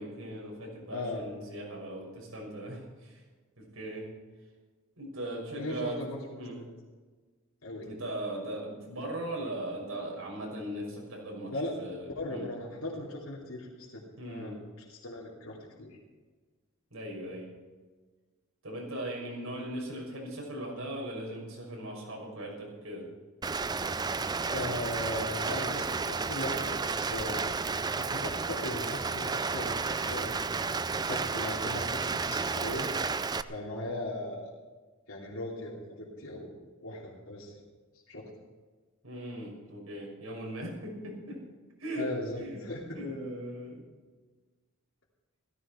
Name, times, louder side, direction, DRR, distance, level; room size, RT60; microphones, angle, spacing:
voice 1, 0.0-3.2 3.6-4.1 5.0-6.0 6.4-6.6 7.8-12.5 14.2-14.6 16.9-17.5 18.6-23.1 39.0-41.4 41.8-42.1 42.4-42.6 42.9-43.8, right 1 dB, 85° right, -2 dB, 6.0 m, -39 dB
voice 2, 0.9-1.2 5.5-6.2 6.5-6.6 7.6-7.9 11.5-11.7 12.1-14.6 14.9-16.0 24.5-27.4 28.0-32.9 33.5-34.5 35.1-36.5 36.8-37.6 38.1-38.3 41.9-43.1, left 1 dB, 80° left, -5 dB, 3.0 m, -38 dB
Rain, 23.4-33.4, right 4 dB, 20° right, 0.4 m, -32 dB
16.5 x 15.0 x 4.5 m, 1.4 s
head